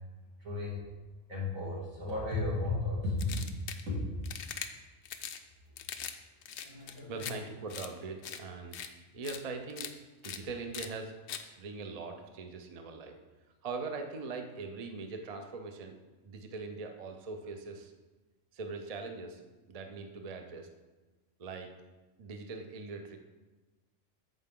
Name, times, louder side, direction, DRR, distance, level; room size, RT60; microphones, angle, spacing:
voice 1, 0.4-0.8 1.3-3.4 3.9-4.0 6.6-7.3, left 2 dB, 80° right, -5 dB, 2.7 m, -34 dB
sound 1, 3.2-3.8 4.2-4.7 5.0-5.4 5.8-6.1 6.4-7.3 7.7-7.9 8.2-8.4 8.7-8.9 9.2-9.4 9.7-9.9 10.2-10.4 10.7-10.9 11.3-11.4, left 9 dB, 65° left, 0.8 m, -41 dB
voice 2, 7.1-8.8 9.1-9.9 10.2-11.1 11.6-13.2 13.6-15.9 16.2-17.9 18.5-19.4 19.7-20.7 21.4-21.7 22.2-23.2, right 4 dB, 40° right, 5 dB, 0.6 m, -41 dB
9.1 x 6.8 x 3.7 m, 1.2 s
omnidirectional pair, 1.4 m